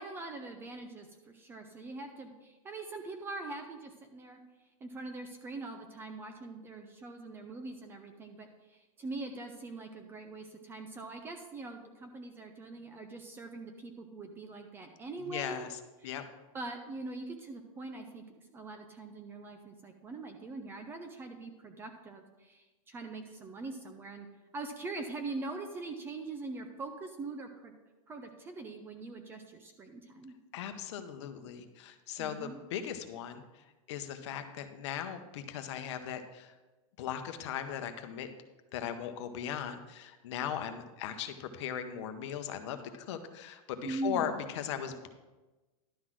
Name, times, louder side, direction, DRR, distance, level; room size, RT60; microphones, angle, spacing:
voice 1, 0.0-4.4 4.8-15.7 16.0-16.2 16.5-24.3 24.5-27.8 28.1-30.4 32.2-32.6 43.8-44.4, right 3 dB, 10° right, 6 dB, 0.4 m, -42 dB
voice 2, 15.3-16.2 30.5-33.4 33.9-36.5 37.0-38.3 38.7-45.1, left 9 dB, 50° left, 8 dB, 0.8 m, -38 dB
11.5 x 3.9 x 6.1 m, 1.1 s
supercardioid pair, 165°, 18 cm